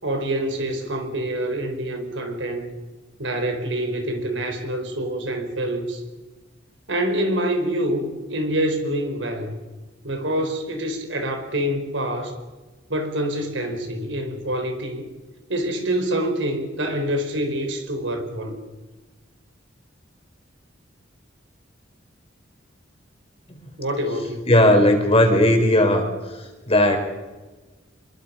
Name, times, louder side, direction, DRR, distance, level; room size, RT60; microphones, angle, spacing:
voice 1, 0.0-2.7 3.2-6.0 6.9-9.5 10.0-12.3 12.9-15.1 15.5-18.6 23.8-24.5, right 1 dB, 70° right, 5 dB, 4.6 m, -26 dB
voice 2, 24.5-26.1 26.7-27.0, left 1 dB, 30° left, 4 dB, 4.5 m, -16 dB
27.5 x 22.5 x 5.7 m, 1.2 s
head